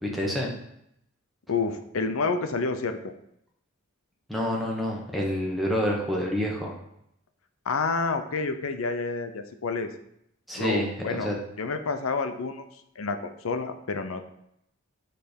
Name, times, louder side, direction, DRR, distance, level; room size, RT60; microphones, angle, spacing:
voice 1, 0.0-0.5 4.3-6.7 10.5-11.4, equal, ahead, -3 dB, 1.2 m, -28 dB
voice 2, 1.5-3.1 7.7-9.9 10.6-11.3 11.6-12.6 13.0-14.2, left 4 dB, 90° left, 8 dB, 0.6 m, -29 dB
6.7 x 3.3 x 5.2 m, 0.76 s
head